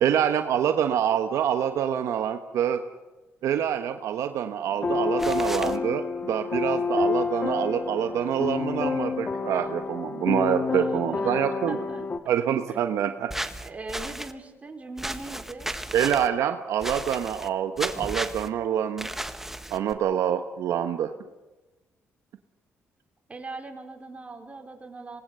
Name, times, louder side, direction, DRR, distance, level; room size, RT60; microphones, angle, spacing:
voice 1, 0.0-2.8 3.4-11.8 12.3-13.3 15.9-19.1 19.7-21.1, right 9 dB, 80° right, 7 dB, 1.2 m, -26 dB
sound 1, 4.7-12.2, left 4 dB, 35° left, 1.6 m, -28 dB
sound 2, 5.2-5.8 13.3-14.3 15.0-16.3 16.8-17.5 17.8-18.5 19.0-19.9, right 1 dB, 5° right, 1.4 m, -34 dB
voice 2, 10.7-12.0 12.7-12.8 13.6-15.8 23.3-25.2, right 3 dB, 25° right, 3 dB, 4.2 m, -40 dB
26.0 x 19.0 x 6.9 m, 1.1 s
cardioid pair, 75°, 5 cm